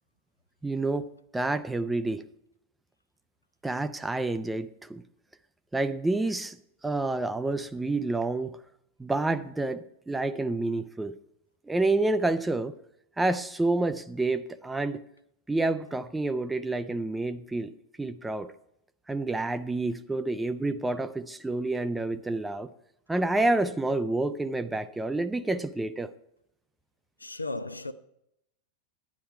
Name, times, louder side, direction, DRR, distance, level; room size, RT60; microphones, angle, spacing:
voice 1, 0.6-2.2 3.6-5.0 5.7-6.6 6.8-8.6 9.0-11.2 11.7-12.7 13.2-15.0 15.5-18.5 19.1-22.7 23.1-26.1, right 2 dB, 10° right, 0.5 m, -29 dB
voice 2, 27.2-27.9, left 2 dB, 85° left, 0.5 m, -35 dB
11.0 x 9.6 x 4.6 m
figure-of-eight pair, 90°, 0 cm